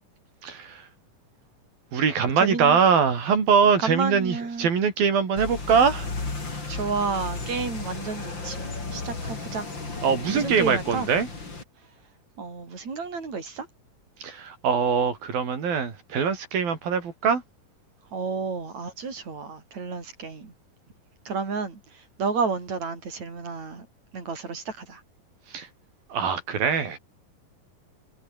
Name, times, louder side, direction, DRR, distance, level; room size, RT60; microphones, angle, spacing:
voice 1, 0.4-0.9 1.9-6.1 10.0-11.3 14.2-17.4 25.5-25.7 26.1-27.0, right 6 dB, 85° right, 6.0 m, -23 dB
voice 2, 2.4-2.8 3.8-4.7 6.7-9.7 10.3-11.1 12.4-13.7 18.1-20.5 21.3-21.8 22.2-23.9 24.1-25.0, right 4 dB, 50° right, 7.1 m, -31 dB
sound 1, 5.4-11.6, left 3 dB, 30° left, 5.3 m, -34 dB
omnidirectional pair, 4.1 m